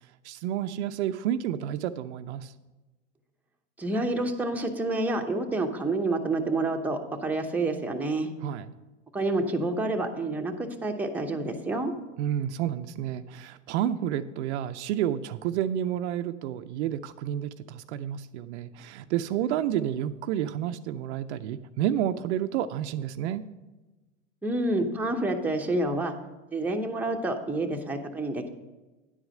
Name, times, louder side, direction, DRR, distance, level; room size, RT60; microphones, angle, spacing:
voice 1, 0.2-2.5 8.4-8.7 12.2-23.4, right 10 dB, 70° right, 11 dB, 0.5 m, -30 dB
voice 2, 3.8-8.3 9.1-11.9 24.4-26.1 26.5-28.5, right 2 dB, 5° right, 2 dB, 0.8 m, -28 dB
10.0 x 4.8 x 6.4 m, 1.2 s
hypercardioid pair, 105°, 36 cm